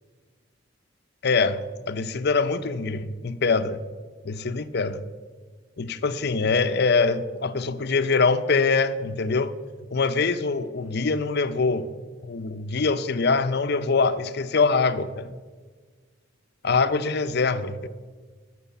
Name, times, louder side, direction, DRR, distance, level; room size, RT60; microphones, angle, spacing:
voice 1, 1.2-1.6 1.9-3.8 4.2-5.0 5.8-9.5 9.9-11.9 12.2-15.3 16.6-17.9, left 4 dB, 55° left, 12 dB, 0.6 m, -24 dB
12.5 x 6.3 x 8.0 m, 1.5 s
head